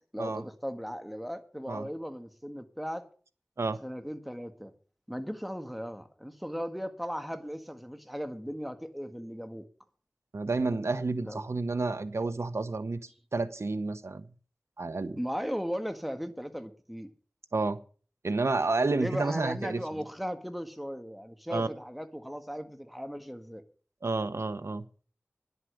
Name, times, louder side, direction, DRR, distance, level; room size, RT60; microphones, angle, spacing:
voice 1, 0.1-3.0 3.8-4.7 5.1-9.6 11.2-11.4 15.2-17.1 18.9-23.6, equal, ahead, 1.7 m, -37 dB
voice 2, 10.3-13.0 13.3-14.3 14.8-15.2 17.5-17.8 18.2-19.8 21.5-21.7 24.0-24.8, right 3 dB, 85° right, 0.9 m, -30 dB
10.5 x 8.2 x 7.7 m
wide cardioid pair, 40°, 5 cm